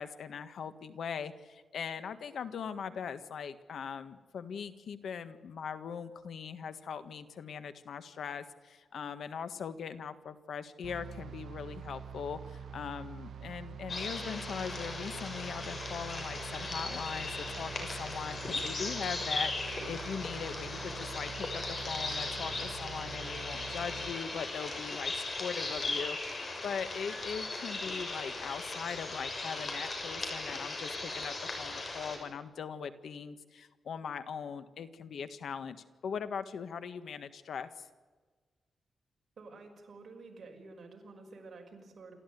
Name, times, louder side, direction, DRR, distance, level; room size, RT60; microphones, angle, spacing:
voice 1, 0.0-35.8 36.0-37.9, left 7 dB, 80° left, 11 dB, 1.6 m, -40 dB
sound 1, 10.8-24.1, right 7 dB, 80° right, 1.2 m, -45 dB
sound 2, 13.9-32.2, left 2 dB, 40° left, 6.5 m, -38 dB
voice 2, 39.4-42.1, right 3 dB, 55° right, 2 dB, 6.0 m, -50 dB
28.5 x 14.0 x 9.4 m, 1.4 s
wide cardioid pair, 115°, 0 cm